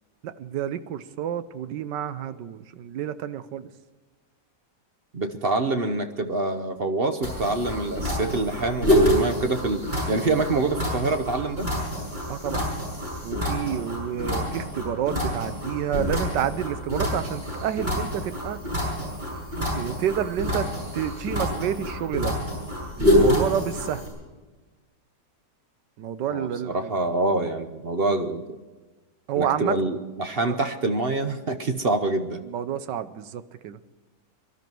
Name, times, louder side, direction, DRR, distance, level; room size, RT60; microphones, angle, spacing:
voice 1, 0.2-3.7 12.3-12.7 13.2-18.6 19.6-20.7 20.9-22.4 23.0-24.0 26.0-26.9 29.3-29.7 30.5-30.6 32.5-33.8, right 10 dB, 90° right, 13 dB, 1.5 m, -29 dB
voice 2, 5.1-11.7 26.3-28.6 29.4-32.4, right 2 dB, 45° right, 8 dB, 0.9 m, -26 dB
sound 1, 7.2-24.1, equal, 25° right, 7.0 m, -27 dB
23.0 x 12.5 x 4.6 m, 1.3 s
omnidirectional pair, 1.8 m